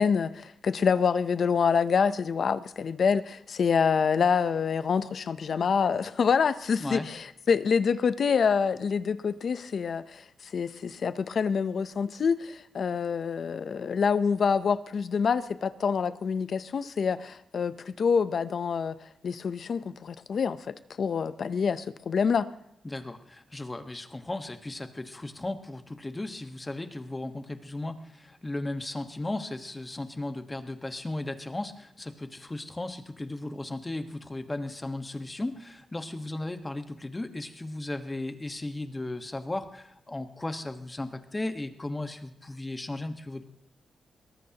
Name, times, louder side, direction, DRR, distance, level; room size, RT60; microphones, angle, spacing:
voice 1, 0.0-19.0 19.2-22.5, left 6 dB, 65° left, 13 dB, 0.7 m, -26 dB
voice 2, 22.8-43.5, left 2 dB, 20° left, 7 dB, 1.3 m, -36 dB
22.5 x 18.5 x 2.9 m, 0.80 s
cardioid pair, 80°, 0 cm